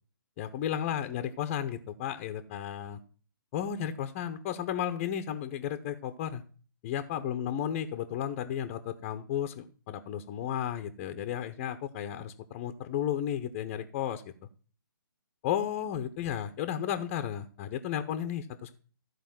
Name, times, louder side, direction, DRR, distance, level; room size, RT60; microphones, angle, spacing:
voice 1, 0.4-3.0 3.5-6.4 6.8-14.2 15.4-18.7, left 10 dB, 25° left, 7 dB, 0.9 m, -33 dB
14.5 x 4.9 x 7.7 m, 0.41 s
figure-of-eight pair, 135°, 12 cm